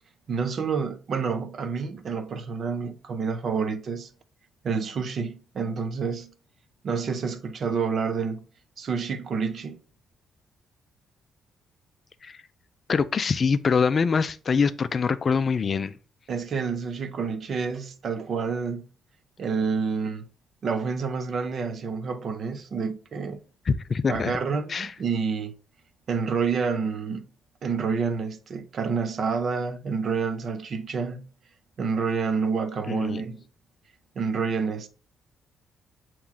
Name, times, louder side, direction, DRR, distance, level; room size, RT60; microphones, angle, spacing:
voice 1, 0.3-4.1 4.6-6.3 6.8-8.4 8.8-9.8 16.3-18.8 19.4-20.3 20.6-23.4 24.1-25.5 26.1-27.3 27.6-31.2 31.8-33.4 34.2-34.9, right 5 dB, 55° right, 0.5 m, -28 dB
voice 2, 12.9-15.9 23.7-24.4 24.7-24.9 32.9-33.2, left 5 dB, 40° left, 0.3 m, -24 dB
7.0 x 3.0 x 2.3 m
cardioid pair, 90°, 0 cm